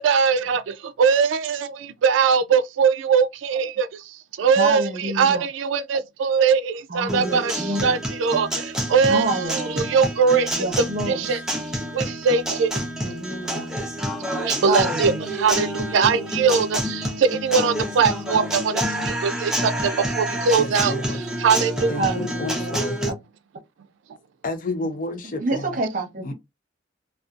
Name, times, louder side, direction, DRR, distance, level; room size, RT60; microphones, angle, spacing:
voice 1, 0.0-11.4 11.9-12.8 14.3-20.9 21.4-22.0, right 5 dB, 85° right, 0.3 m, -21 dB
voice 2, 4.6-5.4 6.9-8.0 9.1-9.6 10.5-11.2 13.0-13.7 14.6-15.2 22.0-22.7 25.4-26.3, right 2 dB, 45° right, 0.7 m, -27 dB
Guitar, 7.1-23.1, equal, 5° right, 0.5 m, -28 dB
voice 3, 14.5-15.1 20.6-21.2 21.9-23.0 24.4-25.7 26.2-26.3, left 2 dB, 45° left, 0.5 m, -31 dB
2.5 x 2.3 x 2.4 m
head